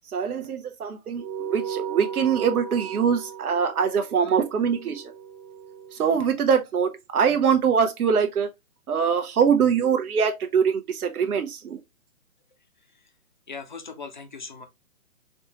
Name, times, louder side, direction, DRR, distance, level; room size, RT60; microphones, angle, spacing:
voice 1, 0.1-5.0 5.9-8.5 8.9-11.8, right 6 dB, 85° right, 0.7 m, -23 dB
sound 1, 1.2-6.0, right 8 dB, 30° right, 0.7 m, -36 dB
voice 2, 13.5-14.7, left 5 dB, 35° left, 0.4 m, -39 dB
4.2 x 2.2 x 2.7 m
hypercardioid pair, 155°, 43 cm